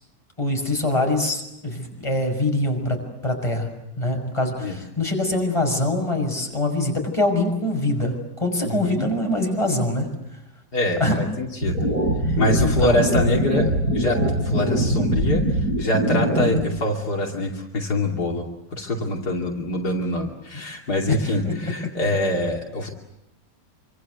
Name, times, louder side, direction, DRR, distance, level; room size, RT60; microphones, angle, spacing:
voice 1, 0.4-3.7 4.0-10.1 11.0-11.2 12.2-13.0 21.1-21.9, left 1 dB, 15° left, 3 dB, 6.2 m, -24 dB
voice 2, 8.6-9.1 10.7-11.9 12.4-18.4 18.7-22.9, left 1 dB, 70° left, 1 dB, 3.4 m, -25 dB
sound 1, 11.6-16.6, right 1 dB, 65° right, 6.6 m, -22 dB
27.5 x 25.5 x 8.2 m, 0.84 s
omnidirectional pair, 1.8 m